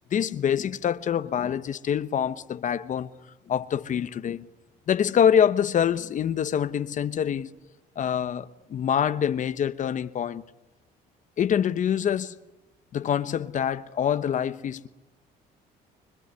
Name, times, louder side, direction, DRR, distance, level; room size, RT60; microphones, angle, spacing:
voice 1, 0.1-3.1 3.5-4.5 4.9-7.5 8.0-10.4 11.4-12.4 12.9-14.9, left 8 dB, 50° left, 1.1 m, -25 dB
25.5 x 23.0 x 9.7 m
cardioid pair, 110°, 17 cm